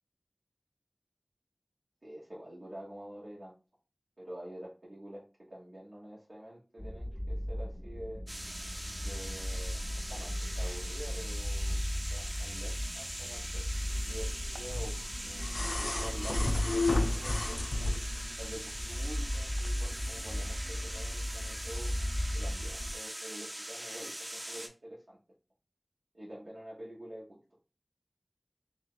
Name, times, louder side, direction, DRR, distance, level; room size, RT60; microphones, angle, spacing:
voice 1, 2.0-3.5 4.2-8.2 9.0-11.8 12.1-13.6 14.0-17.9 18.4-21.9 22.3-25.2 26.1-27.4, right 1 dB, 80° right, -7 dB, 1.1 m, -47 dB
sound 1, 6.8-22.9, equal, 5° left, 0.4 m, -37 dB
sound 2, 8.3-24.7, right 1 dB, 30° right, 0.7 m, -42 dB
sound 3, 14.6-18.3 19.6-19.7, left 2 dB, 75° left, 0.4 m, -31 dB
3.0 x 2.6 x 3.7 m, 0.34 s
wide cardioid pair, 45°, 0 cm